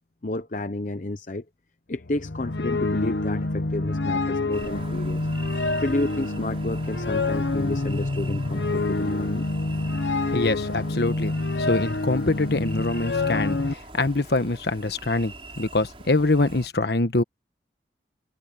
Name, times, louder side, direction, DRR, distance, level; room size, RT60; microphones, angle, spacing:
voice 1, 0.2-1.4 1.9-5.2 5.8-9.5, left 2 dB, 45° left, 0.8 m, -30 dB
sound 1, 2.0-13.7, left 2 dB, 80° left, 1.0 m, -27 dB
sound 2, 4.5-16.7, right 2 dB, 30° right, 5.4 m, -43 dB
voice 2, 10.3-17.2, left 2 dB, 65° left, 1.3 m, -24 dB
head